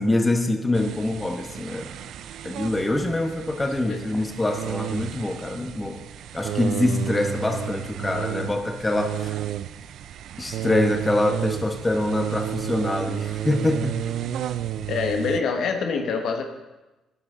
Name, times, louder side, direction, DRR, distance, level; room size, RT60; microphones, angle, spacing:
voice 1, 0.0-1.9 2.4-6.0 6.3-9.4 10.4-14.0, left 1 dB, 15° left, 4 dB, 1.2 m, -25 dB
sound 1, 0.7-15.4, right 11 dB, 75° right, 0.5 m, -32 dB
voice 2, 14.9-16.4, left 5 dB, 75° left, 4 dB, 1.3 m, -25 dB
12.5 x 9.7 x 3.9 m, 1.1 s
cardioid pair, 90°, 0 cm